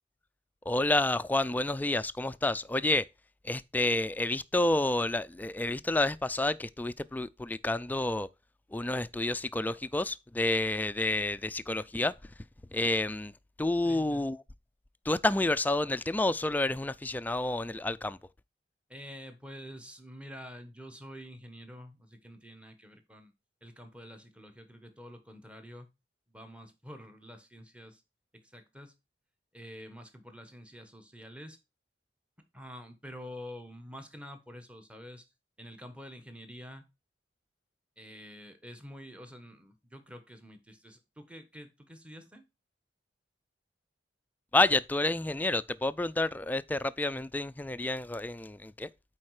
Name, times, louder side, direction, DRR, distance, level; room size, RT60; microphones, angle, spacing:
voice 1, 0.7-3.1 3.4-8.3 8.7-12.3 12.7-14.4 15.1-18.2 44.5-48.9, left 2 dB, 10° left, 0.3 m, -29 dB
voice 2, 13.8-14.3 18.9-23.3 23.6-25.9 26.3-28.0 28.4-28.9 29.5-31.6 32.5-35.2 35.6-36.8 38.0-42.4, equal, 5° right, 1.1 m, -47 dB
8.8 x 4.0 x 4.8 m
head